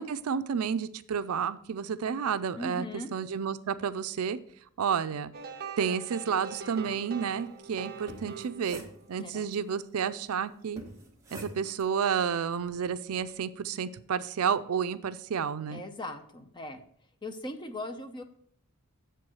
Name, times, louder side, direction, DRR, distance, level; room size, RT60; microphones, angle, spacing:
voice 1, 0.0-2.9 3.1-4.4 4.8-5.3 5.8-8.8 9.1-10.8 11.3-15.8, right 7 dB, 70° right, 13 dB, 0.4 m, -31 dB
voice 2, 2.6-3.1 9.2-9.5 15.7-16.8 17.2-18.2, left 1 dB, 20° left, 8 dB, 0.6 m, -39 dB
sound 1, 5.3-9.2, right 5 dB, 45° right, 0.8 m, -42 dB
sound 2, 7.9-9.5 10.8-11.9, right 1 dB, 15° right, 1.3 m, -46 dB
7.0 x 4.5 x 6.2 m, 0.62 s
head